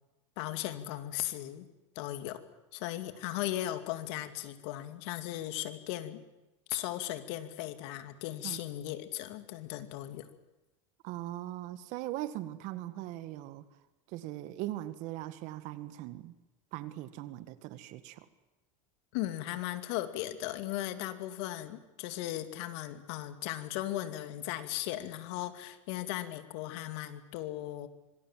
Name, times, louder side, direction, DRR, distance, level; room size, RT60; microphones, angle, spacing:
voice 1, 0.4-1.7 1.9-2.4 2.7-6.2 6.7-10.3 19.1-27.9, left 14 dB, 60° left, 9 dB, 2.7 m, -37 dB
voice 2, 11.0-13.6 14.1-16.3 16.7-18.3, right 14 dB, 50° right, 13 dB, 1.8 m, -40 dB
25.5 x 25.0 x 7.6 m, 1.0 s
supercardioid pair, 140°, 16 cm